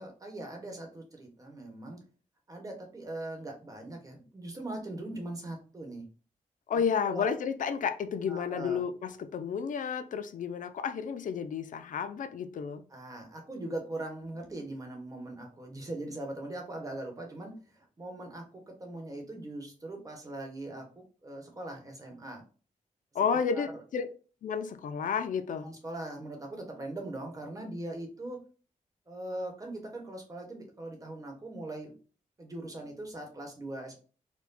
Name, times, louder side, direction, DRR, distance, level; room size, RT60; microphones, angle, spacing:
voice 1, 0.0-2.0 2.5-6.0 6.7-7.3 8.3-8.8 12.9-22.4 23.5-23.8 25.6-28.4 29.1-31.9 32.4-33.9, right 1 dB, 25° right, 1.1 m, -41 dB
voice 2, 6.7-12.8 23.1-24.1 24.4-25.7, left 6 dB, 75° left, 0.4 m, -31 dB
4.4 x 2.1 x 3.9 m
wide cardioid pair, 140°, 14 cm